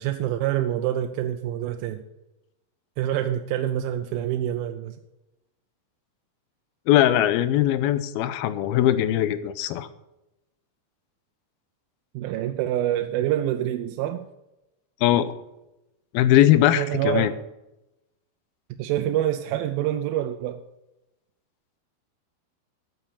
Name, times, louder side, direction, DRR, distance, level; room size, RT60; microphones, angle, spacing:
voice 1, 0.0-2.0 3.0-5.0 12.1-14.2 16.8-17.4 18.8-20.6, right 12 dB, 80° right, 2.3 m, -26 dB
voice 2, 6.9-9.9 15.0-15.3 16.1-17.3, left 12 dB, 80° left, 2.5 m, -20 dB
9.8 x 9.0 x 6.9 m
omnidirectional pair, 4.4 m